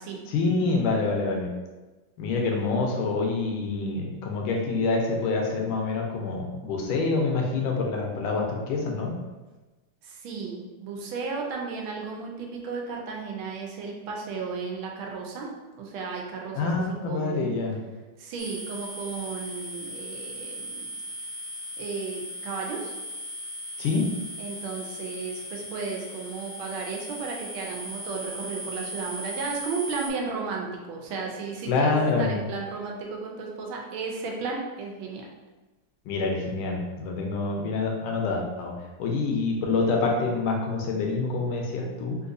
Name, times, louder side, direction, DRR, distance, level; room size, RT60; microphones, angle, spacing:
voice 1, 0.3-1.5 2.2-9.1 16.5-17.8 23.8-24.0 31.6-32.4 36.0-38.7 39.0-42.2, left 3 dB, 80° left, 0 dB, 1.5 m, -26 dB
voice 2, 10.0-17.6 18.2-20.9 21.8-22.9 24.4-35.3, right 4 dB, 80° right, 0 dB, 1.4 m, -34 dB
sound 1, 18.4-30.1, equal, 50° right, 0.9 m, -38 dB
3.9 x 2.6 x 2.5 m, 1.2 s
omnidirectional pair, 2.3 m